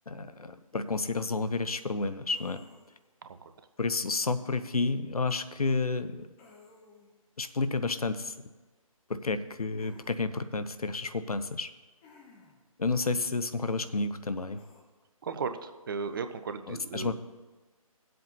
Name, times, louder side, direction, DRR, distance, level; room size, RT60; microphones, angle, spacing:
voice 1, 0.1-2.6 3.8-6.3 7.4-8.3 9.1-11.7 12.8-14.6 16.7-17.1, left 3 dB, 80° left, 11 dB, 0.7 m, -30 dB
sound 1, 2.3-3.1 6.4-7.2 9.8-10.2 12.0-12.7 14.6-14.8, left 4 dB, 20° left, 1.1 m, -56 dB
voice 2, 15.2-17.1, right 5 dB, 35° right, 9 dB, 0.6 m, -35 dB
19.0 x 7.7 x 2.7 m, 1.2 s
figure-of-eight pair, 145°, 19 cm